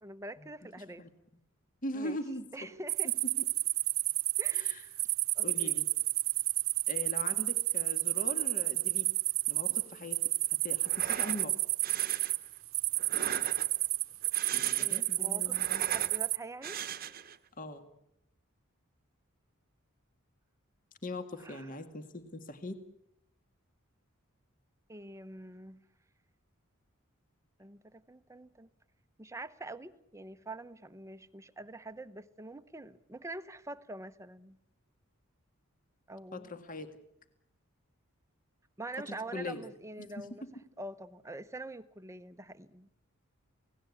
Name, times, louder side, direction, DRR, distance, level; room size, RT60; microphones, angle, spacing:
voice 1, 0.0-1.1 1.9-2.2 2.5-3.1 4.4-4.9 5.3-5.8 14.8-16.8 21.4-21.7 24.9-25.8 27.6-28.7 29.2-34.6 36.1-36.5 38.8-40.4 40.8-42.9, right 2 dB, 15° right, 0.8 m, -45 dB
voice 2, 0.8-1.1 1.8-2.7 4.5-4.9 5.4-5.9 6.9-9.1 9.5-10.2 10.6-11.6 14.5-15.8 17.6-17.8 21.0-22.8 36.3-36.9 39.0-39.6 40.0-40.5, left 2 dB, 40° left, 2.0 m, -41 dB
sound 1, 2.9-16.4, right 18 dB, 80° right, 1.1 m, -31 dB
sound 2, 10.8-11.5 11.8-12.3 13.0-13.8 14.2-15.1 15.4-16.2 16.6-17.4, right 7 dB, 45° right, 1.1 m, -40 dB
28.5 x 18.0 x 8.5 m
head